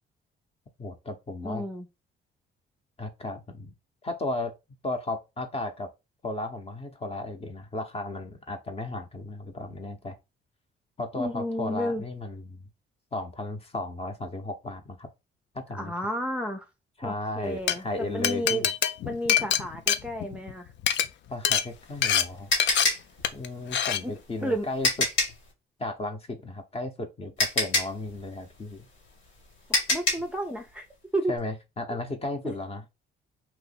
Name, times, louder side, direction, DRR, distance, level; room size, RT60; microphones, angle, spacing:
voice 1, 0.8-1.6 3.0-3.7 4.0-4.5 4.8-5.9 6.2-10.2 11.0-12.6 13.1-15.1 15.5-15.9 17.0-18.7 21.3-22.5 23.3-24.9 25.8-28.9 31.3-32.8, left 2 dB, 30° left, 0.9 m, -35 dB
voice 2, 1.4-1.9 11.1-12.0 15.7-16.7 17.0-18.6 19.0-20.7 24.0-24.1 24.4-24.7 29.9-30.9 31.1-31.3 32.4-32.5, equal, 5° right, 0.6 m, -31 dB
Glass, 17.5-17.7 18.2-20.5 20.8-21.0 21.4-21.6 22.0-22.2 22.6-22.8 23.2-23.5 23.7-24.0, left 9 dB, 65° left, 0.5 m, -24 dB
sound 1, 21.6-25.5 26.9-27.0 27.4-30.4, left 2 dB, 80° left, 2.0 m, -27 dB
2.9 x 2.6 x 4.0 m
cardioid pair, 90°, 20 cm